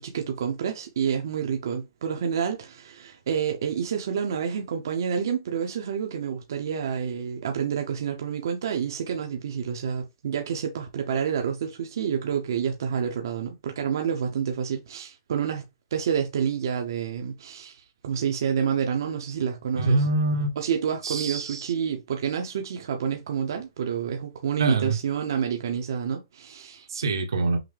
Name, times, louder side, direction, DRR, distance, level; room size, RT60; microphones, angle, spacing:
voice 1, 0.0-15.7 15.9-20.0 20.6-26.9, right 7 dB, 55° right, 0.7 m, -28 dB
voice 2, 19.8-20.6 21.0-21.7 24.6-25.0 26.9-27.6, right 3 dB, 85° right, 1.2 m, -24 dB
5.8 x 2.1 x 3.3 m
hypercardioid pair, 165°, 2 cm